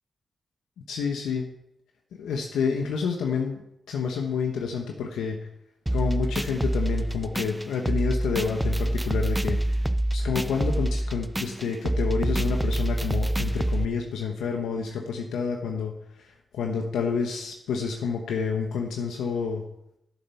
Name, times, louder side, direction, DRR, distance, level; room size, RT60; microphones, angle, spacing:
voice 1, 0.9-1.5 2.2-5.4 5.9-19.6, left 5 dB, 90° left, 2 dB, 1.0 m, -29 dB
sound 1, 5.9-13.8, right 1 dB, 10° right, 0.4 m, -26 dB
11.0 x 7.0 x 5.8 m, 0.81 s
supercardioid pair, 50°, 0 cm